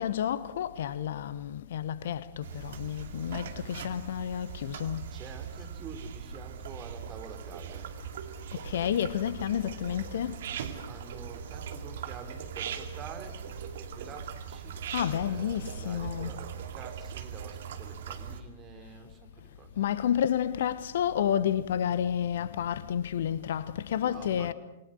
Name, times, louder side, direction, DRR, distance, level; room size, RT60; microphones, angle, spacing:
voice 1, 0.0-5.1 8.5-10.4 14.9-16.4 19.8-24.5, left 9 dB, 55° left, 1.1 m, -30 dB
sound 1, 2.4-18.4, right 7 dB, 55° right, 2.4 m, -40 dB
voice 2, 5.1-7.9 10.9-14.8 15.2-19.8 23.9-24.5, right 6 dB, 25° right, 3.6 m, -47 dB
27.5 x 22.5 x 6.5 m
figure-of-eight pair, 105°, 0 cm